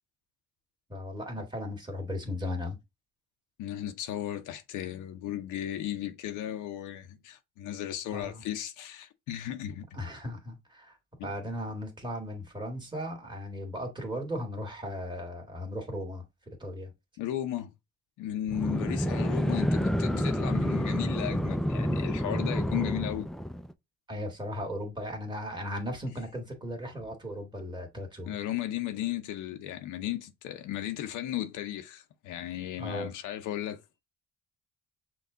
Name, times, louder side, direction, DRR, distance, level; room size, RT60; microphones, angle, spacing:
voice 1, 0.9-2.8 8.1-8.4 9.9-16.9 18.5-18.8 24.1-28.5 32.8-33.1, left 1 dB, 15° right, 1.8 m, -37 dB
voice 2, 3.6-9.9 11.2-11.3 17.2-17.7 18.2-23.3 28.3-34.0, left 12 dB, 90° left, 0.7 m, -35 dB
sound 1, 18.5-23.7, equal, ahead, 0.3 m, -29 dB
5.9 x 2.3 x 3.7 m
cardioid pair, 90°, 30 cm